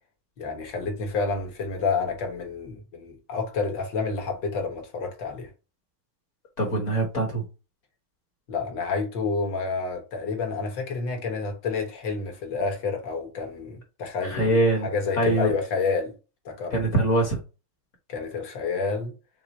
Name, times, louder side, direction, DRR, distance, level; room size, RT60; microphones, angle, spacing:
voice 1, 0.4-5.5 8.5-16.1 16.4-16.7 18.1-19.1, left 4 dB, 60° left, 1.7 m, -29 dB
voice 2, 6.6-7.4 14.2-14.9 15.2-15.5 16.7-17.4, right 2 dB, 40° left, 1.3 m, -23 dB
6.0 x 2.1 x 4.0 m
omnidirectional pair, 2.4 m